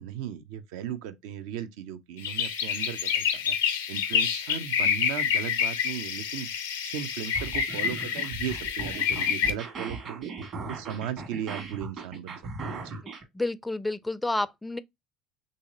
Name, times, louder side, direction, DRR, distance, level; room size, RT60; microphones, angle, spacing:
voice 1, 0.0-3.6 3.9-6.5 6.8-10.3 10.7-13.0, right 10 dB, 70° right, 0.4 m, -37 dB
sound 1, 2.2-9.5, left 7 dB, 85° left, 0.5 m, -28 dB
sound 2, 7.2-13.2, right 3 dB, 50° right, 1.3 m, -38 dB
voice 2, 13.3-14.8, left 2 dB, 10° left, 0.3 m, -29 dB
3.1 x 2.7 x 3.5 m
hypercardioid pair, 70°, 0 cm